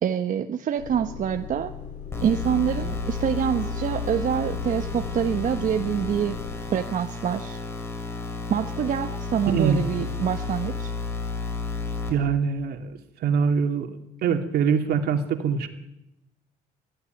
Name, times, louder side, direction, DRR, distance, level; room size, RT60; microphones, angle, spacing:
voice 1, 0.0-1.7 2.2-6.3 6.7-7.6 8.5-10.9, right 8 dB, 50° right, 7 dB, 1.2 m, -26 dB
Motor vehicle (road) / Engine starting / Idling, 0.8-6.6, left 7 dB, 55° left, 5.0 m, -39 dB
sound 1, 2.1-12.1, left 4 dB, 15° left, 6.1 m, -32 dB
voice 2, 9.5-9.9 12.1-12.9 13.2-13.9 14.2-15.7, right 6 dB, 70° right, 5 dB, 2.7 m, -23 dB
24.5 x 15.5 x 9.2 m, 0.89 s
cardioid pair, 110°, 17 cm